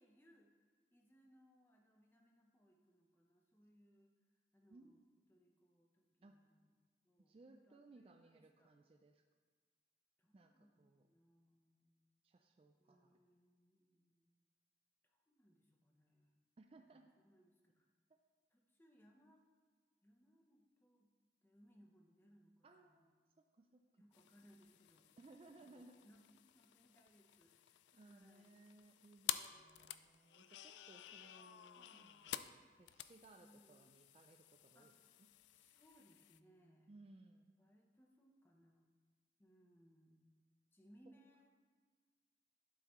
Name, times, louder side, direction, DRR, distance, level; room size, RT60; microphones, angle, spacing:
voice 1, 0.0-4.1 4.5-5.0 5.3-6.7 7.0-8.7 10.2-12.0 12.8-14.2 15.0-16.4 16.9-17.9 18.5-19.4 20.0-21.1 21.4-23.1 23.9-25.1 25.6-28.6 29.3-29.9 31.8-32.3 33.4-33.9 34.7-35.1 35.5-36.9 37.6-38.9 39.4-40.4 40.7-41.5, equal, 10° left, 0 dB, 0.8 m, -70 dB
voice 2, 4.7-5.0 6.2-6.4 7.3-9.2 10.3-11.1 12.2-13.2 16.6-17.1 18.1-18.2 22.6-23.1 23.4-24.0 25.2-26.0 27.9-34.9 36.9-37.5, right 2 dB, 35° right, 5 dB, 0.3 m, -63 dB
sound 1, 24.1-36.4, left 12 dB, 85° left, 0.3 m, -51 dB
11.5 x 5.8 x 3.1 m, 1.5 s
head